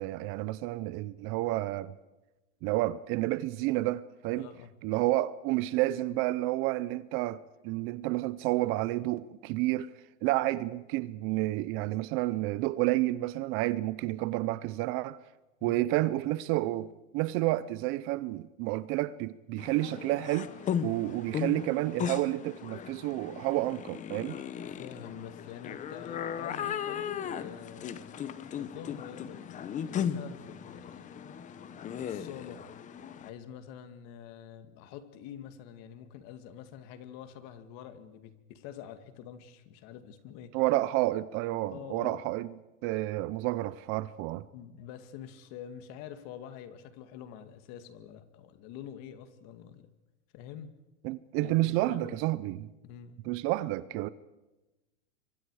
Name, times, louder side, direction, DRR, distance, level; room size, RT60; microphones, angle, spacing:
voice 1, 0.0-1.9 2.6-4.5 4.8-9.9 10.2-15.2 15.6-20.5 20.8-24.4 40.5-42.5 42.8-44.5 51.0-52.7 53.2-54.1, right 17 dB, 35° right, 0.6 m, -30 dB
voice 2, 4.4-4.7 15.6-15.8 24.6-28.1 28.5-31.1 32.0-32.7 33.2-40.5 41.7-42.2 44.5-49.9 50.3-50.8 51.4-52.2 52.8-53.2, left 9 dB, 45° left, 2.3 m, -46 dB
sound 1, 19.6-33.3, left 8 dB, 20° left, 1.0 m, -37 dB
27.5 x 24.5 x 4.9 m
supercardioid pair, 150°, 38 cm